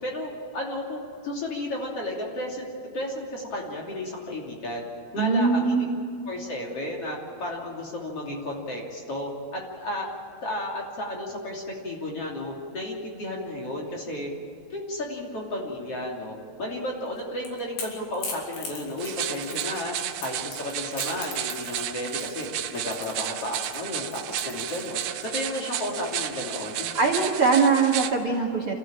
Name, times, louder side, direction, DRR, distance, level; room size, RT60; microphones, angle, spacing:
voice 1, 0.0-4.8 5.1-5.8 6.3-10.1 10.4-14.3 14.7-19.9 20.2-25.0 25.3-26.9, left 1 dB, 40° left, -2 dB, 3.6 m, -33 dB
voice 2, 5.2-5.9 26.9-28.7, right 4 dB, 45° right, 2 dB, 2.1 m, -22 dB
Crackle / Crack, 17.1-25.2, left 4 dB, 75° left, 5.2 m, -40 dB
sound 1, 19.0-28.1, right 11 dB, 90° right, 3.0 m, -33 dB
28.0 x 15.0 x 8.9 m, 2.3 s
omnidirectional pair, 4.5 m